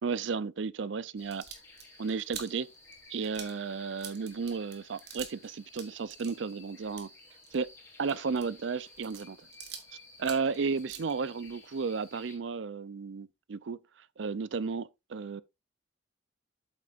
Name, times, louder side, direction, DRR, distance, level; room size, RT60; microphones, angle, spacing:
voice 1, 0.0-1.4 2.0-2.7 3.1-7.1 7.5-7.7 8.0-9.4 10.2-13.8 14.2-15.4, right 5 dB, 80° right, 0.5 m, -33 dB
sound 1, 1.2-12.4, left 2 dB, 15° left, 3.3 m, -55 dB
sound 2, 1.2-5.5 5.7-9.9 10.2-11.7, right 8 dB, 60° right, 1.9 m, -47 dB
8.5 x 8.2 x 2.5 m
head